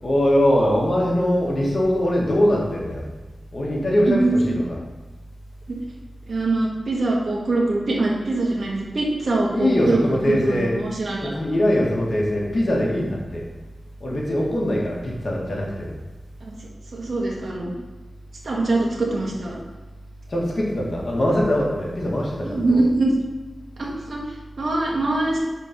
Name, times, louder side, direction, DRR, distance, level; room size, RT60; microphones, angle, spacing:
voice 1, 0.0-3.1 3.5-4.8 9.5-10.8 11.2-13.4 14.0-15.9 20.3-22.8, left 1 dB, 55° left, -3 dB, 1.6 m, -22 dB
voice 2, 4.1-4.5 5.7-5.8 6.3-11.3 16.4-16.5 16.9-17.7 18.4-19.6 22.4-23.1 23.8-24.2 24.6-25.4, right 2 dB, 65° right, -3 dB, 1.6 m, -23 dB
5.2 x 4.1 x 5.8 m, 1.1 s
cardioid pair, 65°, 0 cm